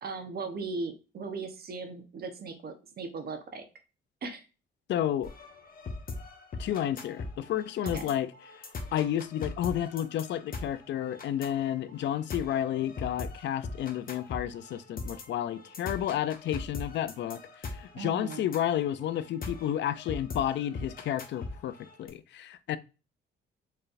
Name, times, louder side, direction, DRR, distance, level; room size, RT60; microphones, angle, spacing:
voice 1, 0.0-3.6 4.2-4.4 7.8-8.0 17.9-18.5, right 4 dB, 50° right, 0.9 m, -38 dB
voice 2, 4.9-5.3 6.6-8.3 8.6-22.8, left 11 dB, 65° left, 0.4 m, -31 dB
sound 1, 5.2-22.1, left 3 dB, 45° left, 1.0 m, -41 dB
4.5 x 3.2 x 2.5 m
cardioid pair, 90°, 20 cm